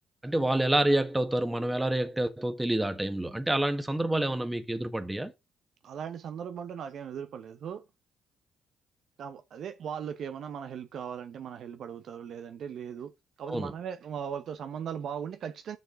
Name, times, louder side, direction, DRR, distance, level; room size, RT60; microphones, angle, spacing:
voice 1, 0.2-5.3 13.5-13.7, right 1 dB, 10° right, 1.4 m, -28 dB
voice 2, 5.8-7.8 9.2-13.1 13.4-15.8, right 8 dB, 65° right, 0.8 m, -38 dB
6.8 x 6.5 x 3.9 m
supercardioid pair, 65°, 0 cm